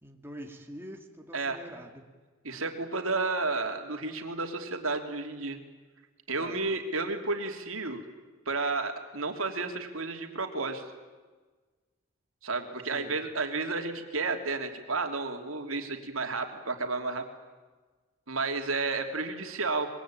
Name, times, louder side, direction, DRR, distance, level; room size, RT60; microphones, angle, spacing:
voice 1, 0.0-1.9 6.3-6.6 12.9-13.2, equal, 10° right, 2 dB, 2.3 m, -45 dB
voice 2, 2.4-5.6 6.3-8.0 8.5-10.8 12.4-17.2 18.3-19.9, right 3 dB, 75° right, 5 dB, 2.9 m, -32 dB
25.0 x 22.5 x 8.9 m, 1.3 s
head